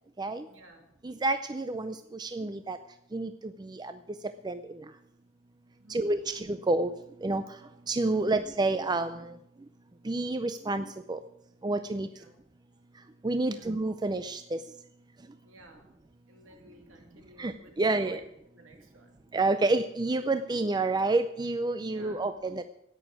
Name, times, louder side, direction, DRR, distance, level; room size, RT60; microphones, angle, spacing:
voice 1, 0.5-0.9 5.8-6.2 8.2-8.4 12.1-12.3 13.5-13.7 15.4-15.9 16.3-18.2 18.5-19.2 21.8-22.3, right 1 dB, 65° right, 3 dB, 2.7 m, -55 dB
voice 2, 1.0-2.8 3.1-4.0 4.2-4.9 5.9-6.9 7.2-7.6 7.9-9.4 10.0-11.2 11.6-12.1 13.2-14.6 17.4-18.2 19.3-22.6, right 2 dB, 20° right, 10 dB, 0.5 m, -29 dB
11.0 x 9.2 x 9.0 m, 0.77 s
head